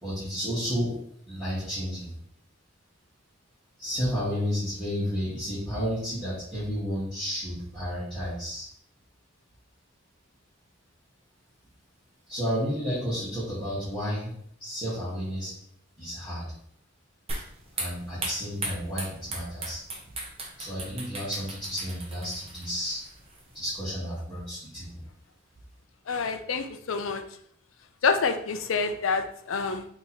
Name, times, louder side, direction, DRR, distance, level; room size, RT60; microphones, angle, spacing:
voice 1, 0.0-1.0 1.3-2.1 3.8-8.6 12.3-14.3 14.6-15.5 16.0-16.5 17.8-19.8 20.6-23.0 23.5-25.0, equal, ahead, -15 dB, 1.7 m, -31 dB
sound 1, 17.3-23.9, right 2 dB, 30° right, 1.0 m, -38 dB
voice 2, 26.1-27.2 28.0-29.9, left 5 dB, 75° left, 8 dB, 0.5 m, -27 dB
3.7 x 2.9 x 4.3 m, 0.66 s
head